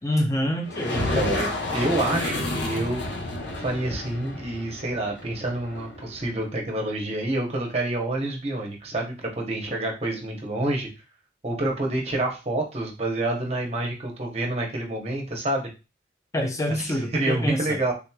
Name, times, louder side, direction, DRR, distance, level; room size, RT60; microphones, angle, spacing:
voice 1, 0.0-1.1 16.3-17.8, left 1 dB, 20° left, 4 dB, 0.4 m, -26 dB
sound 1, 0.6-6.3, left 1 dB, 80° left, 0.7 m, -30 dB
voice 2, 0.9-3.0 3.6-10.9 11.4-15.7 16.8-17.9, right 2 dB, 35° right, 1 dB, 0.8 m, -28 dB
3.5 x 2.9 x 2.2 m, 0.29 s
head